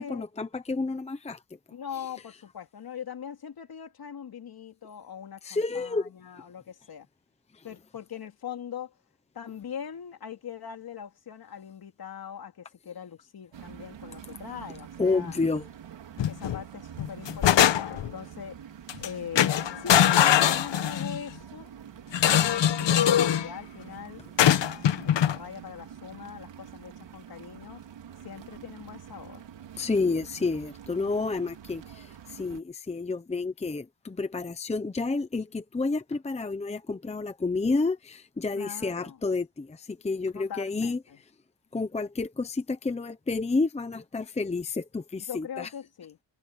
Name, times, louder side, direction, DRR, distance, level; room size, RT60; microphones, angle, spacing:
voice 1, 0.0-1.4 5.4-6.1 15.0-15.7 29.8-41.0 41.7-45.7, left 3 dB, 15° left, 0.8 m, -30 dB
voice 2, 1.7-7.1 7.6-8.9 9.3-15.3 16.2-18.6 19.0-21.7 22.2-24.2 24.5-27.8 28.2-29.4 38.5-39.2 40.3-41.2 45.3-46.2, left 8 dB, 55° left, 3.2 m, -41 dB
sound 1, 13.5-32.6, right 9 dB, 80° right, 3.8 m, -46 dB
sound 2, 16.2-16.6 17.0-18.1 18.9-19.1 19.4-21.2 22.1-23.5 24.4-25.4, left 10 dB, 75° left, 1.5 m, -22 dB
wide cardioid pair, 150°, 43 cm